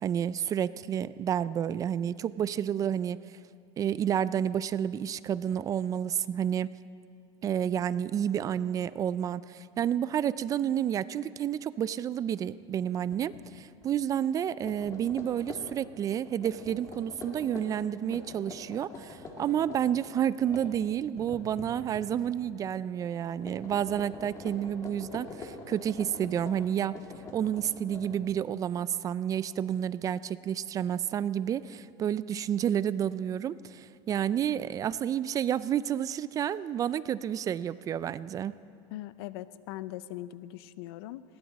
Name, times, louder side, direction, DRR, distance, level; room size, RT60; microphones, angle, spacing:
voice 1, 0.0-3.2 3.8-6.7 7.4-27.0 27.3-38.5, right 9 dB, 25° right, 17 dB, 0.3 m, -30 dB
sound 1, 13.1-13.4 13.8-13.9 14.5-22.5 22.8-23.1 23.4-28.5, left 3 dB, 25° left, 2.0 m, -45 dB
voice 2, 38.9-41.2, left 15 dB, 85° left, 16 dB, 0.6 m, -40 dB
20.0 x 16.5 x 4.1 m, 2.3 s
cardioid pair, 145°, 13 cm